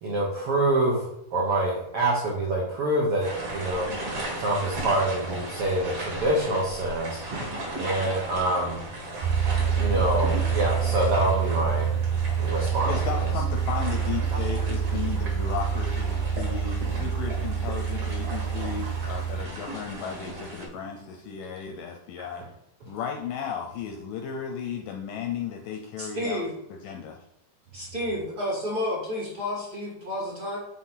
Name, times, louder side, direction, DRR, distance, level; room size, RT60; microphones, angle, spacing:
voice 1, 0.0-3.9 4.4-7.2 7.8-8.8 9.2-9.3 9.8-11.9 12.4-13.3 14.3-14.4 15.4-15.5, right 1 dB, 85° right, -3 dB, 1.2 m, -26 dB
sound 1, 3.2-20.7, right 1 dB, 45° right, 2.3 m, -36 dB
sound 2, 9.2-19.5, right 7 dB, 70° right, 2.1 m, -27 dB
voice 2, 12.9-22.4 22.9-26.4 26.7-27.2, left 7 dB, 80° left, 3 dB, 2.0 m, -34 dB
voice 3, 26.0-26.5 27.7-30.6, left 1 dB, 30° right, -5 dB, 2.0 m, -31 dB
6.4 x 4.2 x 5.6 m, 0.83 s
omnidirectional pair, 4.3 m